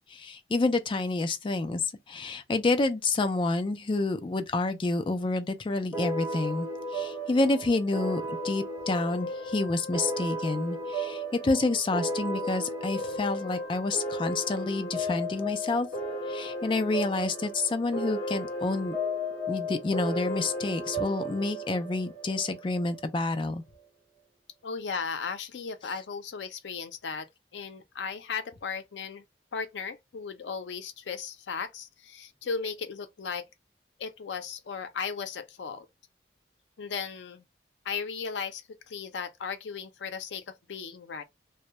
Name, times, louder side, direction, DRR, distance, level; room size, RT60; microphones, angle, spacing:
voice 1, 0.1-6.7 6.9-15.9 16.3-19.0 19.5-23.6, left 3 dB, 30° left, 0.3 m, -28 dB
sound 1, 5.9-23.0, equal, 15° right, 1.2 m, -34 dB
voice 2, 24.6-27.3 27.5-29.2 29.5-33.5 34.0-35.9 36.8-37.4 37.8-41.2, left 5 dB, 90° left, 0.4 m, -36 dB
2.2 x 2.0 x 2.7 m
head